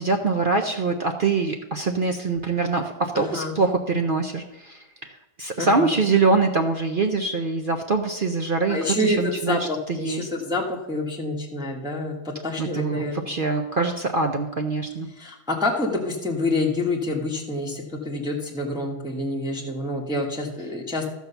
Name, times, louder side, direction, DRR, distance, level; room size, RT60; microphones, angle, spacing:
voice 1, 0.0-10.3 12.6-15.1, right 3 dB, 55° right, 4 dB, 0.6 m, -24 dB
voice 2, 3.1-3.5 5.6-5.9 8.7-13.3 15.2-21.1, left 2 dB, 5° right, 0 dB, 1.2 m, -27 dB
13.0 x 4.7 x 6.8 m, 0.96 s
omnidirectional pair, 1.7 m